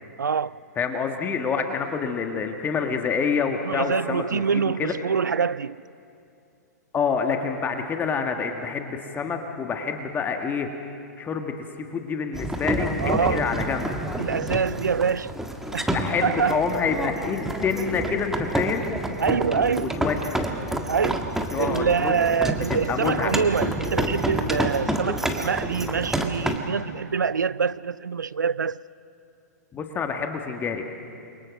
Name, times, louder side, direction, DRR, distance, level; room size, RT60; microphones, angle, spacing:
voice 1, 0.2-0.6 3.6-5.8 13.0-13.5 14.2-15.4 15.7-16.6 19.2-20.0 20.9-28.8, right 6 dB, 85° right, 0.5 m, -25 dB
voice 2, 0.8-5.0 6.9-10.7 11.2-13.9 15.9-18.9 19.8-20.2 21.5-22.1 22.7-23.3 29.7-30.8, left 5 dB, 20° left, 1.8 m, -27 dB
sound 1, 12.3-26.6, right 1 dB, 5° right, 1.7 m, -29 dB
28.5 x 23.5 x 6.5 m
hypercardioid pair, 115°, 10 cm